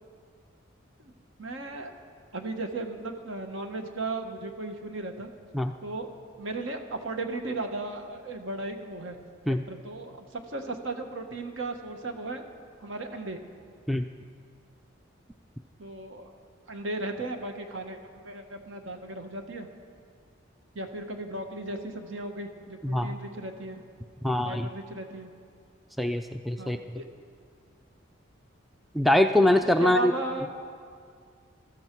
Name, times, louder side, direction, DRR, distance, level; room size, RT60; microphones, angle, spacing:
voice 1, 1.4-1.9 2.3-5.3 5.8-6.1 6.4-9.2 9.5-12.4 12.8-13.4 15.8-16.4 16.7-19.7 20.7-23.8 24.4-25.3 26.6-27.0 29.8-30.5, right 2 dB, 70° right, 5 dB, 1.3 m, -36 dB
voice 2, 22.8-23.2 24.2-24.7 26.0-26.8 28.9-30.1, left 1 dB, ahead, 7 dB, 0.3 m, -23 dB
20.0 x 13.0 x 4.6 m, 2.1 s
head